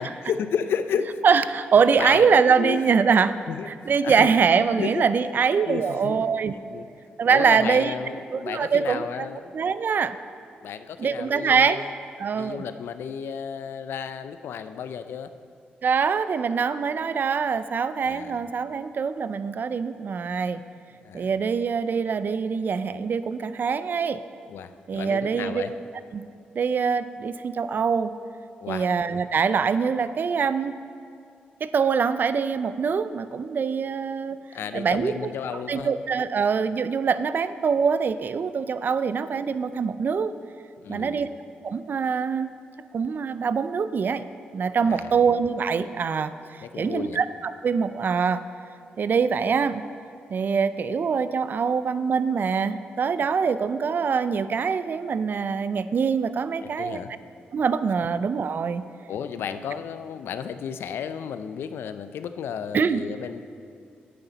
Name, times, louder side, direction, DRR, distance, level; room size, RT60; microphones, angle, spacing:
voice 1, 0.0-1.2 1.9-3.0 3.5-5.1 5.6-6.9 7.3-9.6 10.6-11.9 12.3-15.3 18.0-18.5 21.0-21.4 24.5-25.7 28.6-28.9 34.5-35.9 40.8-41.3 44.8-45.2 46.6-47.2 56.6-57.1 59.1-63.4, left 7 dB, 80° left, 11 dB, 0.4 m, -33 dB
voice 2, 1.2-3.4 3.9-6.5 7.2-7.9 8.3-9.3 9.5-10.2 11.0-11.8 12.2-12.6 15.8-20.6 21.1-24.2 24.9-25.6 26.1-26.3 26.6-28.2 28.7-30.7 31.6-34.4 34.7-35.3 35.7-40.3 40.9-41.3 41.6-42.5 42.9-44.2 44.5-48.4 49.0-49.8 50.3-57.0 57.5-58.8 62.7-63.0, right 6 dB, 55° right, 13 dB, 0.4 m, -24 dB
11.0 x 9.0 x 4.0 m, 2.5 s
supercardioid pair, 55°, 4 cm